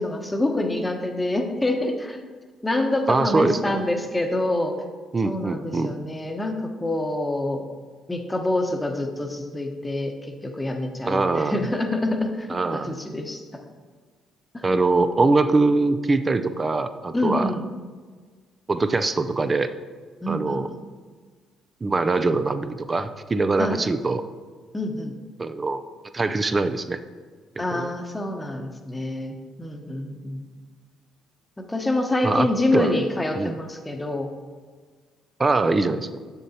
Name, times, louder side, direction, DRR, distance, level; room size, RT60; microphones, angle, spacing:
voice 1, 0.0-2.2 2.6-4.8 5.2-6.5 6.8-7.6 8.1-13.4 14.5-14.7 17.1-17.6 20.2-20.8 23.6-23.8 24.7-25.1 27.6-30.5 31.6-34.3, left 1 dB, 15° left, 4 dB, 1.0 m, -26 dB
voice 2, 3.1-3.8 5.1-5.9 11.1-11.7 12.5-12.9 14.6-17.5 18.7-19.7 20.3-20.7 21.8-24.2 25.4-25.8 26.1-27.0 27.7-27.9 32.2-32.9 33.4-33.6 35.4-36.2, right 3 dB, 30° right, 10 dB, 0.4 m, -23 dB
7.4 x 6.9 x 2.8 m, 1.5 s
hypercardioid pair, 55°, 0 cm